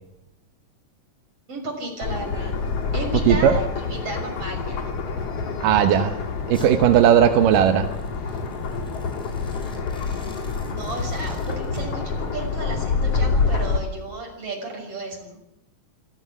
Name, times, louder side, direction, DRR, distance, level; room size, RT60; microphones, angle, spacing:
voice 1, 1.5-2.6 2.9-4.9 10.7-15.4, right 2 dB, 45° right, 3 dB, 7.3 m, -33 dB
sound 1, 2.0-13.8, left 4 dB, 50° left, 3.1 m, -27 dB
voice 2, 5.6-6.2 6.5-7.9, right 10 dB, 85° right, 7 dB, 2.7 m, -17 dB
Domestic sounds home sounds, 6.5-6.7 7.8-11.9, equal, ahead, 6.7 m, -49 dB
26.0 x 16.0 x 9.7 m, 0.81 s
omnidirectional pair, 3.7 m